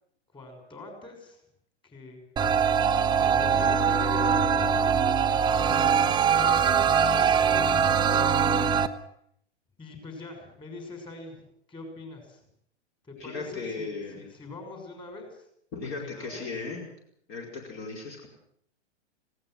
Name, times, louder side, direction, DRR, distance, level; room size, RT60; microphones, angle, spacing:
voice 1, 0.3-1.4 1.8-2.2 2.7-2.8 3.1-5.8 6.3-8.4 8.7-8.9 9.8-12.4 13.0-15.5 15.8-16.5, left 2 dB, 15° left, 4 dB, 6.1 m, -43 dB
sound 1, 2.4-8.9, right 7 dB, 15° right, 0.8 m, -22 dB
voice 2, 13.2-14.3 15.7-16.8 17.3-18.3, left 4 dB, 35° left, 0 dB, 5.1 m, -36 dB
19.5 x 17.0 x 7.9 m, 0.69 s
hypercardioid pair, 120°, 35 cm